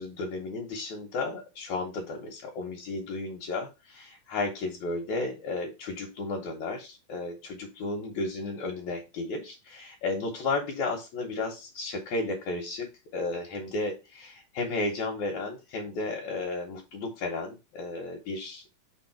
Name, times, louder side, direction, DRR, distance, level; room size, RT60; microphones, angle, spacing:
voice 1, 0.0-18.7, left 3 dB, 70° left, -1 dB, 2.4 m, -33 dB
5.5 x 3.7 x 5.9 m, 0.27 s
omnidirectional pair, 3.7 m